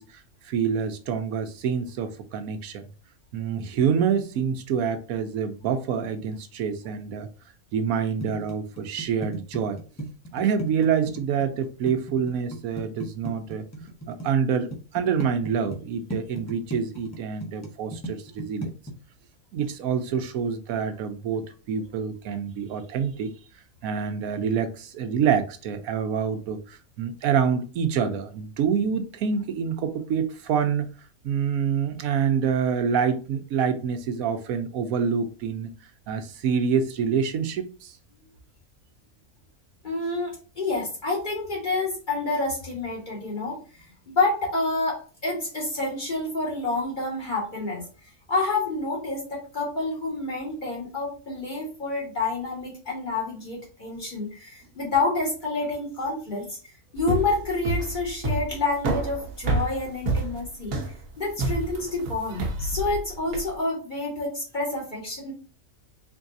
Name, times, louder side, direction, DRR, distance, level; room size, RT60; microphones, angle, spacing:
voice 1, 0.0-2.9 3.3-7.3 7.7-9.8 10.3-13.6 14.1-18.7 19.5-23.3 23.8-30.9 31.2-35.7 36.1-38.0, right 7 dB, 90° right, 1.1 m, -26 dB
sound 1, 8.2-14.2 14.7-15.8 16.1-18.9, right 1 dB, 15° left, 0.7 m, -35 dB
voice 2, 39.8-43.6 44.1-47.8 48.3-60.7 61.2-65.3, left 3 dB, 35° left, 2.1 m, -28 dB
sound 2, 57.0-63.5, right 2 dB, 75° right, 1.3 m, -28 dB
3.9 x 3.5 x 2.6 m
omnidirectional pair, 1.4 m